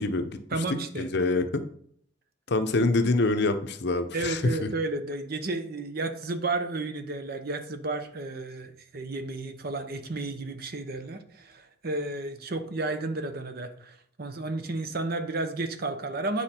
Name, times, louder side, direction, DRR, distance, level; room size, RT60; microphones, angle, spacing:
voice 1, 0.0-0.6 1.0-1.6 2.5-4.5, left 2 dB, 55° left, 9 dB, 0.7 m, -25 dB
voice 2, 0.5-1.0 4.1-16.4, right 2 dB, 50° right, 9 dB, 0.8 m, -32 dB
8.7 x 5.0 x 4.4 m, 0.64 s
head